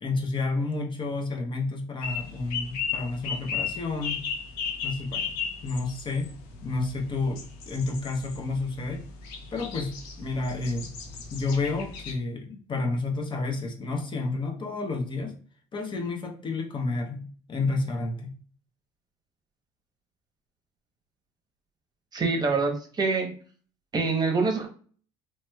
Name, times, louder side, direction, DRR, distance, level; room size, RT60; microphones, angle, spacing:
voice 1, 0.0-4.2 4.8-5.3 5.6-6.3 6.6-9.0 9.5-10.9 11.3-15.4 15.7-18.3, left 3 dB, 35° left, 3 dB, 0.7 m, -30 dB
sound 1, 2.0-12.1, left 6 dB, 80° left, 0.7 m, -36 dB
voice 2, 22.1-23.3 23.9-24.7, right 4 dB, 30° right, 3 dB, 0.8 m, -25 dB
3.1 x 2.9 x 2.2 m, 0.42 s
supercardioid pair, 95°, 14 cm